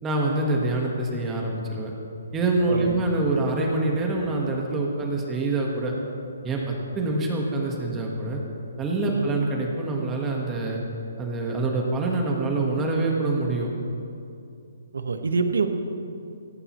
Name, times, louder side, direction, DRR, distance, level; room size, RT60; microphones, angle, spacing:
voice 1, 0.0-1.9 2.3-5.9 6.4-8.4 8.8-10.8 11.2-13.7, right 2 dB, 10° right, -1 dB, 1.4 m, -25 dB
voice 2, 2.7-3.0 9.1-9.3 14.9-15.7, right 4 dB, 90° right, 7 dB, 1.4 m, -25 dB
17.5 x 16.5 x 3.1 m, 2.6 s
hypercardioid pair, 165°, 0 cm